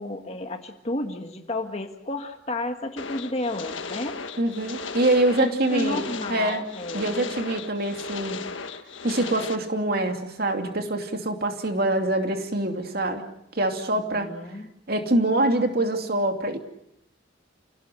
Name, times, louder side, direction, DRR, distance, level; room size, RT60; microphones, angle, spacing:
voice 1, 0.0-4.2 5.4-7.1 13.9-14.7, left 1 dB, 35° left, 5 dB, 1.7 m, -32 dB
sound 1, 3.0-9.6, left 5 dB, 75° left, 1.7 m, -36 dB
voice 2, 4.4-6.6 6.9-8.5 9.0-13.3 13.5-14.3 14.9-16.6, right 1 dB, 50° right, 4 dB, 2.7 m, -25 dB
29.0 x 17.5 x 7.8 m, 0.80 s
head